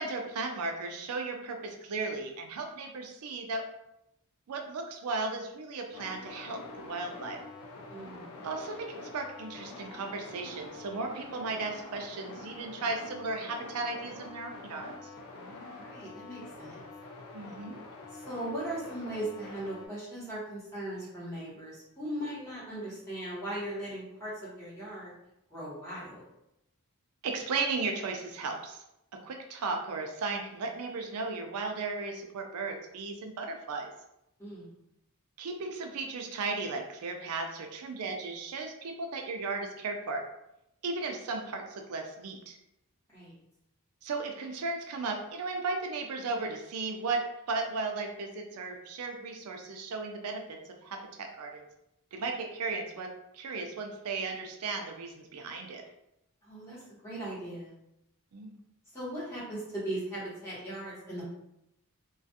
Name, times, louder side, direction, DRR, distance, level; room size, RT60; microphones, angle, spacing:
voice 1, 0.0-3.6 4.5-7.4 8.4-14.9 17.3-17.8 27.2-28.8 29.1-33.9 35.4-40.2 40.8-42.6 44.0-51.6 52.1-55.8 58.3-58.6, right 3 dB, 80° right, 3 dB, 0.4 m, -35 dB
sound 1, 5.9-19.9, left 3 dB, 85° left, 0.4 m, -46 dB
voice 2, 7.9-8.3 15.7-16.8 18.1-25.1 25.5-26.2 34.4-34.7 43.1-43.3 56.4-57.7 58.9-61.2, right 1 dB, 10° left, -9 dB, 1.1 m, -38 dB
2.4 x 2.3 x 2.6 m, 0.83 s
head